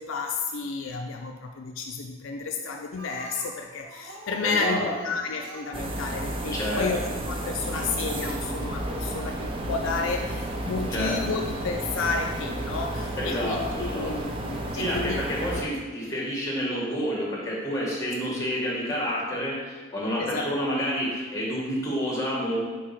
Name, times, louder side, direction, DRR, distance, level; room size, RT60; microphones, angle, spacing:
voice 1, 0.0-15.2 18.3-18.4 20.2-20.5, left 4 dB, 65° left, 2 dB, 0.4 m, -31 dB
Speech, 3.0-6.5 7.4-7.5 7.9-8.0 8.3-8.4, right 1 dB, 90° right, 1.9 m, -45 dB
voice 2, 4.4-5.1 6.5-6.9 10.9-11.4 13.2-14.1 14.8-22.6, equal, 15° left, -4 dB, 1.6 m, -29 dB
sound 1, 5.7-15.6, right 1 dB, 25° right, 0.5 m, -32 dB
4.8 x 4.0 x 5.8 m, 1.4 s
head